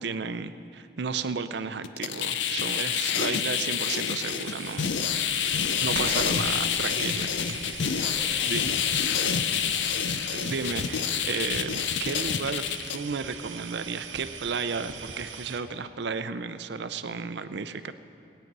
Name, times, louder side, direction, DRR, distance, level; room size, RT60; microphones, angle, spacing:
voice 1, 0.0-4.9 5.8-7.3 7.6-8.1 8.4-8.6 10.4-12.6 12.9-17.9, right 5 dB, 65° right, 12 dB, 0.5 m, -33 dB
sound 1, 1.8-13.0, left 8 dB, 70° left, 0.5 m, -28 dB
sound 2, 4.2-15.6, right 6 dB, 85° right, 1.0 m, -40 dB
voice 2, 7.7-9.2 9.6-9.9, equal, 10° right, -2 dB, 1.4 m, -48 dB
19.5 x 9.1 x 5.4 m, 2.6 s
head